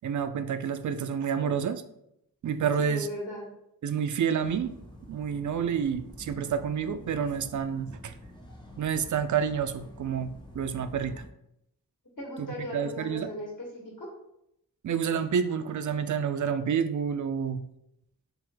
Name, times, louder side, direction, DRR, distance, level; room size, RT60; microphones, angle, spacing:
voice 1, 0.0-1.8 2.4-3.1 3.8-4.7 5.1-8.1 8.8-11.1 12.4-12.5 12.7-13.3 14.8-17.6, right 7 dB, 55° right, 11 dB, 0.4 m, -29 dB
voice 2, 2.8-3.5 12.2-14.1, equal, 55° left, -3 dB, 1.3 m, -37 dB
sound 1, 4.4-11.3, left 1 dB, 10° left, 0.8 m, -48 dB
3.4 x 3.3 x 3.4 m, 0.78 s
cardioid pair, 45°, 37 cm